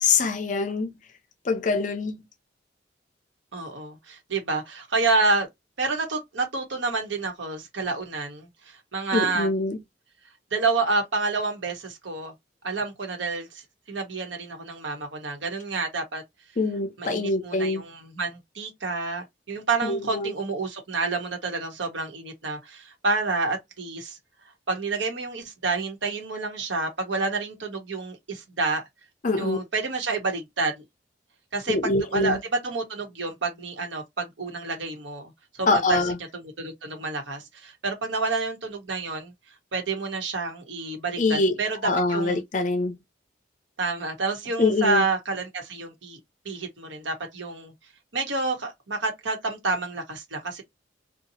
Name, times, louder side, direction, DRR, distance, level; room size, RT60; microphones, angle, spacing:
voice 1, 0.0-0.9 1.5-2.2 9.1-9.8 16.6-17.8 19.8-20.3 29.2-29.6 31.7-32.4 35.7-36.2 41.2-41.6 41.8-43.0 44.6-45.0, left 3 dB, 45° left, 0.5 m, -24 dB
voice 2, 3.5-5.5 5.8-9.5 10.5-12.3 12.6-16.2 17.0-24.2 24.7-28.8 29.3-30.8 31.5-36.0 36.3-39.3 39.7-41.8 42.1-42.4 43.8-46.2 46.4-47.7 48.1-50.6, right 3 dB, 80° right, 1.1 m, -29 dB
2.8 x 2.3 x 2.7 m
head